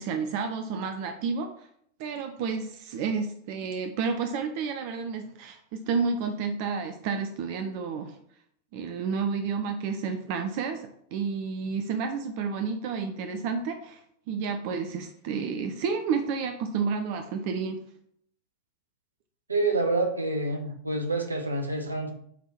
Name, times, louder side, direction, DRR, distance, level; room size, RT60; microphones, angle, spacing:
voice 1, 0.0-1.7 2.0-8.2 8.7-14.0 14.3-17.8, right 5 dB, 45° right, 6 dB, 0.6 m, -30 dB
voice 2, 19.5-22.1, right 2 dB, 80° right, 4 dB, 1.0 m, -27 dB
8.5 x 3.6 x 4.3 m, 0.68 s
figure-of-eight pair, 90°, 0 cm